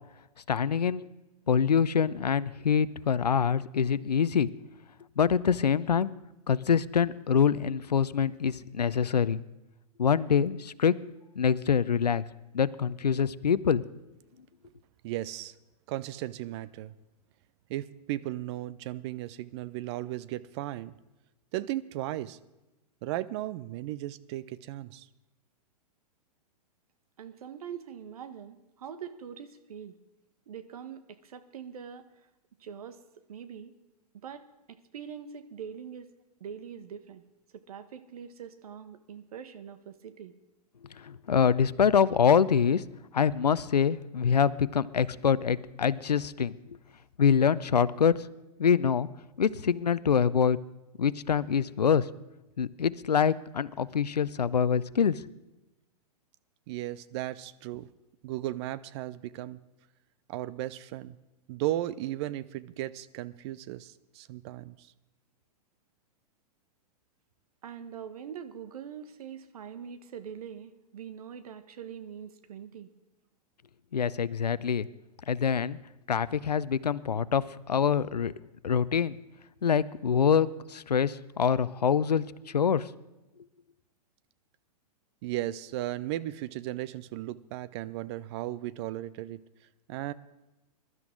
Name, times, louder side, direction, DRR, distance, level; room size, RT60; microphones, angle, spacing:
voice 1, 0.5-1.0 1.5-4.5 5.2-6.1 6.5-9.4 10.0-10.9 11.4-12.2 12.5-13.8 41.0-42.8 43.1-46.6 47.2-48.1 48.6-49.1 49.4-50.6 51.0-52.1 52.6-55.2 73.9-74.9 75.3-75.8 76.1-78.3 78.6-79.2 79.6-82.2 82.5-82.9, left 7 dB, 85° left, 17 dB, 0.6 m, -25 dB
voice 2, 15.0-15.5 15.9-16.9 17.7-20.9 21.5-22.4 23.0-25.1 56.7-57.9 58.2-59.6 60.3-61.2 61.5-64.9 85.2-89.4 89.9-90.1, right 14 dB, 45° right, 17 dB, 0.7 m, -35 dB
voice 3, 27.2-30.0 30.5-32.1 32.6-33.0 33.3-33.7 34.1-36.1 36.4-37.3 37.5-40.3 67.6-72.9, right 8 dB, 65° right, 11 dB, 1.3 m, -43 dB
22.0 x 12.5 x 3.8 m, 1.0 s
figure-of-eight pair, 110°, 20 cm